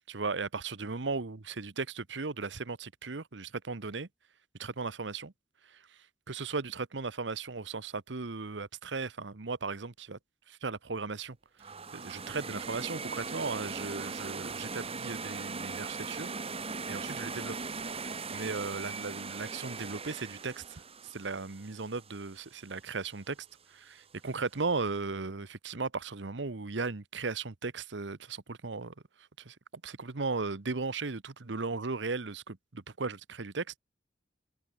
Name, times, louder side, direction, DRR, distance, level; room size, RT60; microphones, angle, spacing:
voice 1, 0.0-4.1 4.6-5.3 5.7-6.0 6.3-10.2 10.5-11.4 11.9-16.3 16.9-17.5 18.0-23.4 23.7-28.9 29.4-29.6 29.8-33.7, right 4 dB, 80° right, 1.0 m, -36 dB
sound 1, 11.6-22.6, right 4 dB, 35° right, 2.3 m, -39 dB
head